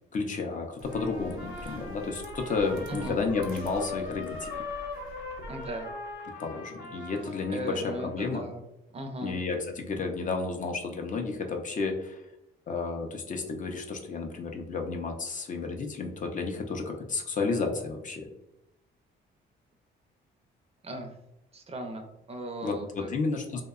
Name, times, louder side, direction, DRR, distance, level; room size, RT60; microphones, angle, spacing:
voice 1, 0.1-4.5 6.4-8.4 9.2-12.2 12.7-18.3 22.6-23.6, left 4 dB, 40° left, 3 dB, 0.4 m, -32 dB
sound 1, 0.8-6.1, right 2 dB, 85° right, 0.5 m, -47 dB
Trumpet, 0.9-8.2, left 3 dB, 60° left, 0.9 m, -40 dB
voice 2, 2.9-3.2 5.5-5.9 7.5-8.6 8.9-9.4 20.8-21.2 21.5-23.1, right 1 dB, 30° right, 4 dB, 0.4 m, -38 dB
2.7 x 2.1 x 2.3 m, 0.88 s
cardioid pair, 90°, 20 cm